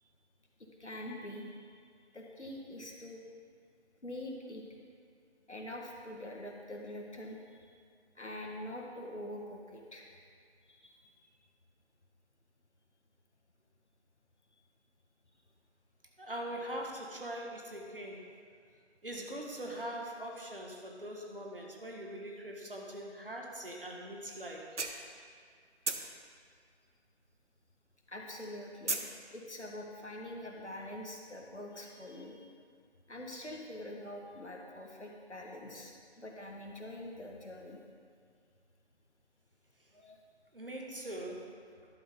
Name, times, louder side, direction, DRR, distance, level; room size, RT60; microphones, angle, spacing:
voice 1, 0.6-1.7 2.1-3.2 4.0-4.6 5.5-7.7 8.1-10.1 10.7-11.1 23.9-24.0 28.1-29.0 29.3-32.4 33.1-37.8 39.9-40.2, left 1 dB, 80° left, 0 dB, 1.7 m, -45 dB
voice 2, 16.2-18.3 19.0-24.7 39.8-39.9 40.5-41.4, right 1 dB, 50° right, 0 dB, 1.6 m, -42 dB
sound 1, 24.0-24.1 24.5-25.5 25.8-27.7 27.9-29.2, right 3 dB, 80° right, 1.0 m, -36 dB
11.5 x 7.7 x 3.8 m, 2.1 s
figure-of-eight pair, 170°, 34 cm